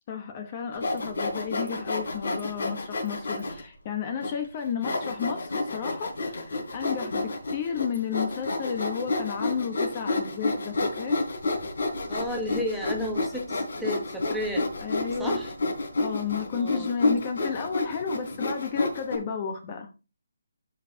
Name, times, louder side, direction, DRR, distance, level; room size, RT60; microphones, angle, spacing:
voice 1, 0.1-11.2 14.8-15.4 16.0-19.9, left 7 dB, 25° left, 0.9 m, -32 dB
Sawing, 0.7-3.6 4.2-4.3 4.8-19.2, left 2 dB, 70° left, 3.4 m, -29 dB
voice 2, 12.1-14.7 15.2-15.5 16.5-16.9, equal, ahead, 1.1 m, -32 dB
12.0 x 5.4 x 2.8 m
hypercardioid pair, 170°, 0 cm